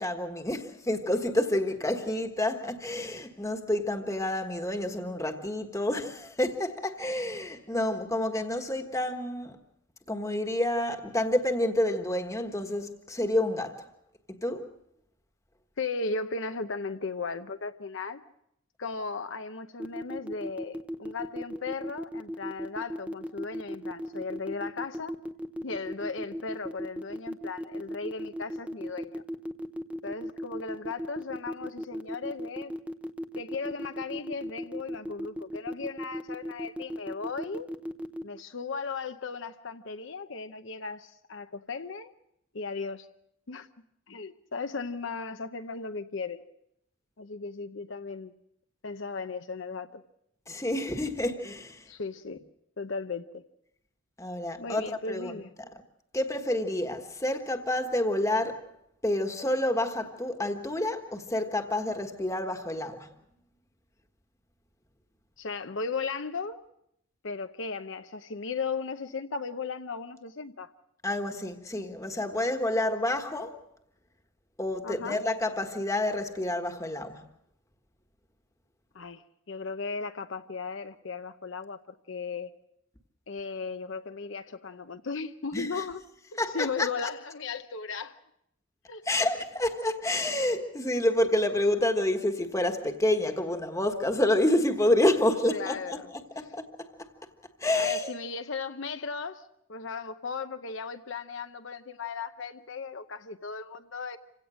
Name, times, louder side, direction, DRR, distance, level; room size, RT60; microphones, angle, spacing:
voice 1, 0.0-9.6 10.1-13.9 14.4-14.7 50.5-51.9 54.2-55.4 56.1-58.7 59.0-63.1 71.0-73.6 74.6-77.2 85.5-85.8 86.4-86.9 89.0-96.9 97.6-98.1, left 1 dB, 15° left, 1.4 m, -28 dB
voice 2, 15.8-18.2 18.8-25.2 25.6-29.2 30.0-32.7 33.4-37.7 38.2-42.1 42.5-43.1 43.5-43.7 44.1-46.4 47.2-48.3 48.8-50.0 51.9-52.4 52.8-53.4 54.6-55.5 65.4-66.6 67.2-70.7 74.8-75.2 78.9-81.8 82.1-82.5 83.3-86.0 86.5-88.2 88.9-89.0 95.5-96.1 97.7-99.4 99.7-104.2, left 4 dB, 65° left, 0.7 m, -36 dB
sound 1, 19.8-38.2, equal, 5° right, 0.7 m, -36 dB
27.0 x 17.0 x 6.3 m
head